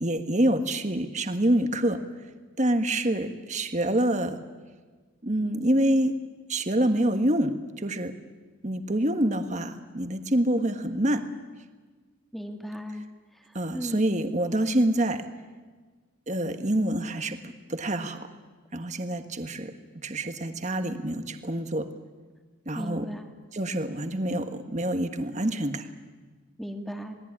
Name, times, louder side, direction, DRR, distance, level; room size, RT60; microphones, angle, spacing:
voice 1, 0.0-2.0 2.6-4.4 5.2-6.1 6.5-8.1 8.6-11.3 13.5-15.2 16.3-17.4 17.7-18.3 18.7-19.7 20.0-21.9 22.6-23.1 23.5-25.9, right 1 dB, 35° right, 8 dB, 1.5 m, -26 dB
voice 2, 12.3-13.0 13.3-14.0 22.7-23.3 26.6-27.2, equal, ahead, 4 dB, 1.9 m, -36 dB
27.5 x 20.0 x 9.9 m, 1.4 s
head